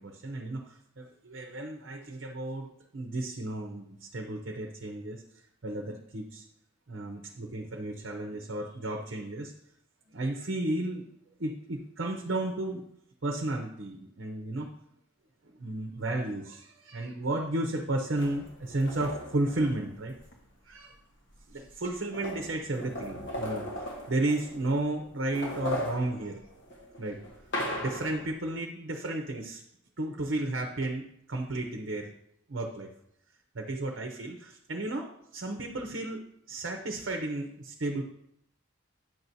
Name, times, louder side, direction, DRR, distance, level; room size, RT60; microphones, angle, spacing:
voice 1, 0.0-5.2 5.6-6.4 6.9-9.5 10.1-11.1 11.4-12.9 13.2-14.7 15.4-20.1 20.6-21.0 21.5-26.6 27.0-27.2 27.8-29.6 30.0-32.1 32.5-32.9 33.5-36.2 36.5-38.0, right 2 dB, 65° right, 3 dB, 0.7 m, -33 dB
sound 1, 18.2-20.4 21.3-21.4 21.7-24.8 25.2-28.3, equal, 60° left, 1.3 m, -38 dB
9.1 x 6.0 x 2.7 m, 0.73 s
head